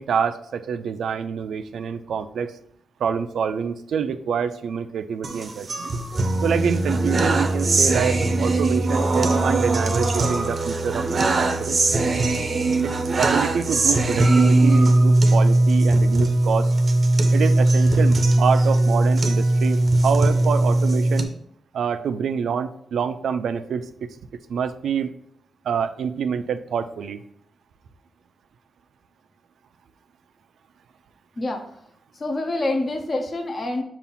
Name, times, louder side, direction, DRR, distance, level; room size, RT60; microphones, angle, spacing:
voice 1, 0.0-2.5 3.0-5.9 6.4-11.8 12.8-16.7 17.3-21.3 21.7-24.1 24.5-25.1 25.6-27.2, right 7 dB, 80° right, 10 dB, 0.4 m, -26 dB
sound 1, 5.2-21.2, right 2 dB, 30° right, 0.6 m, -19 dB
voice 2, 31.4-31.8 32.1-33.8, left 2 dB, 30° left, 4 dB, 0.6 m, -26 dB
6.9 x 2.5 x 5.5 m, 0.69 s
wide cardioid pair, 180°, 0 cm